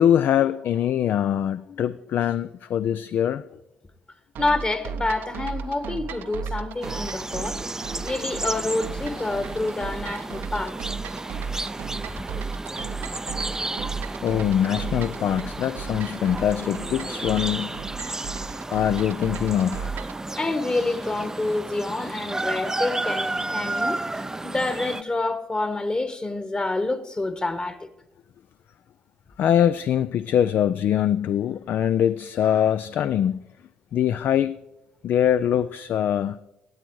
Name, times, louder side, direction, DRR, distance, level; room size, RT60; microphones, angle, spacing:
voice 1, 0.0-3.4 14.2-17.7 18.1-18.2 18.7-19.9 29.4-33.4 33.9-34.6 35.0-36.4, left 10 dB, 60° left, 0.3 m, -23 dB
voice 2, 4.4-7.6 8.0-10.8 20.4-24.0 24.4-27.8, left 2 dB, 25° left, 1.3 m, -27 dB
sound 1, 4.4-20.2, right 6 dB, 65° right, 0.6 m, -35 dB
sound 2, 6.8-25.0, right 2 dB, 15° right, 0.4 m, -32 dB
16.5 x 7.9 x 4.6 m
hypercardioid pair, 50°, 4 cm